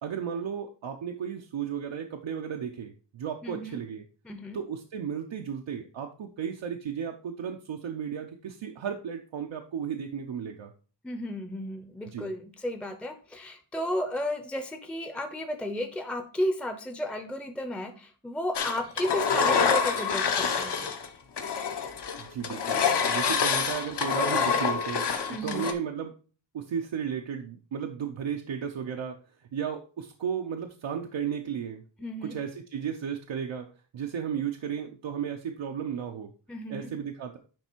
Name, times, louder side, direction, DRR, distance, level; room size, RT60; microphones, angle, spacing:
voice 1, 0.0-4.0 4.5-10.7 12.1-12.3 22.2-26.1 26.5-29.2 29.5-31.8 32.2-33.7 33.9-36.3 36.7-37.4, right 8 dB, 85° right, 3 dB, 0.8 m, -34 dB
voice 2, 3.4-3.8 4.2-4.6 11.0-20.9 25.3-25.7 32.0-32.4 36.5-36.9, equal, 5° left, 8 dB, 0.6 m, -33 dB
Engine, 18.5-21.1 21.4-25.7, left 6 dB, 65° left, 1.0 m, -26 dB
9.9 x 3.3 x 4.4 m, 0.38 s
wide cardioid pair, 165°, 44 cm